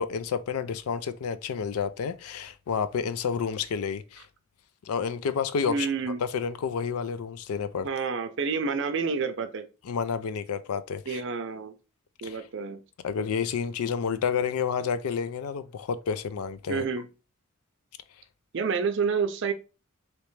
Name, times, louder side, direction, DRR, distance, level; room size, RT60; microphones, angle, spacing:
voice 1, 0.0-4.3 4.8-5.9 6.3-7.9 9.8-11.2 12.2-12.5 13.0-16.8, left 6 dB, 85° left, 0.4 m, -30 dB
voice 2, 5.6-6.2 7.8-9.6 11.1-11.7 12.2-12.8 16.7-17.1 18.5-19.5, right 5 dB, 55° right, 0.5 m, -29 dB
3.2 x 2.9 x 3.1 m
head